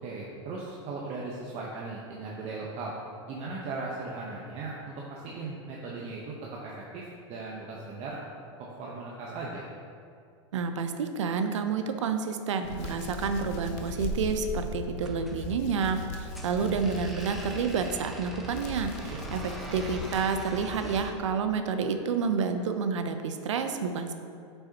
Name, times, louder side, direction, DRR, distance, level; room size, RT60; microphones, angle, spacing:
voice 1, 0.0-2.9 3.3-8.2 8.6-9.7 19.1-19.2, right 3 dB, 45° right, -4 dB, 0.9 m, -38 dB
voice 2, 10.5-19.4 19.7-24.1, right 5 dB, 85° right, 7 dB, 0.6 m, -29 dB
Hands, 12.6-21.0, left 3 dB, 45° left, 0.7 m, -38 dB
sound 1, 15.0-21.2, equal, ahead, 1.0 m, -44 dB
8.3 x 5.6 x 2.8 m, 2.4 s
hypercardioid pair, 110°, 15 cm